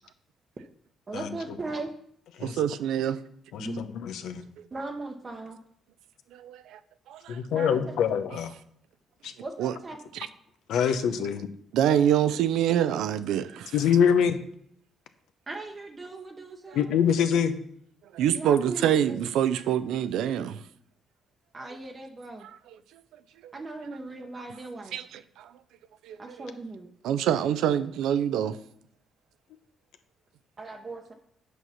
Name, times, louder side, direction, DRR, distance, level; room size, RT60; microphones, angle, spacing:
voice 1, 1.1-1.9 3.6-3.8 4.7-5.6 7.5-7.9 9.4-10.0 15.5-16.8 18.3-19.2 21.5-22.5 23.5-25.0 26.2-26.9 30.6-31.1, right 2 dB, 30° right, 2 dB, 0.8 m, -38 dB
voice 2, 2.4-3.2 6.3-6.8 7.1-7.7 9.6-9.8 10.1-10.3 11.7-13.7 16.7-16.8 18.1-20.6 22.4-22.8 23.4-23.5 24.9-25.5 26.0-26.5 27.0-28.6, right 10 dB, 85° right, 13 dB, 0.5 m, -26 dB
voice 3, 3.5-4.4 7.3-8.5 9.2-9.3 10.7-11.5 13.7-14.4 16.7-17.5, left 7 dB, 85° left, 9 dB, 0.7 m, -25 dB
8.1 x 4.7 x 5.7 m, 0.67 s
cardioid pair, 90°, 0 cm